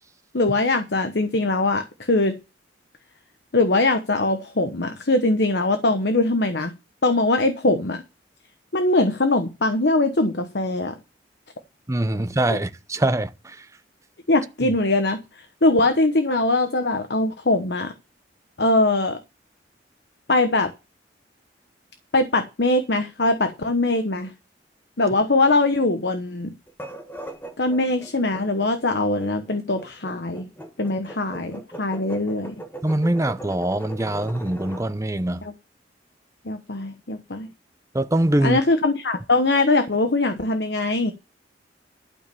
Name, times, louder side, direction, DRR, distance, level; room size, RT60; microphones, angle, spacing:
voice 1, 0.3-2.4 3.5-6.7 7.0-8.0 8.7-10.9 14.3-15.2 15.6-17.9 18.6-19.2 20.3-20.7 22.1-24.3 25.0-26.5 27.6-30.5 30.8-32.5 36.4-37.5 38.4-41.1, left 2 dB, 65° left, 1.1 m, -21 dB
voice 2, 11.9-13.7 32.8-35.4 37.9-38.6, right 1 dB, 15° right, 0.6 m, -23 dB
sound 1, 26.7-34.9, right 1 dB, 10° left, 1.4 m, -39 dB
12.0 x 5.3 x 6.9 m
head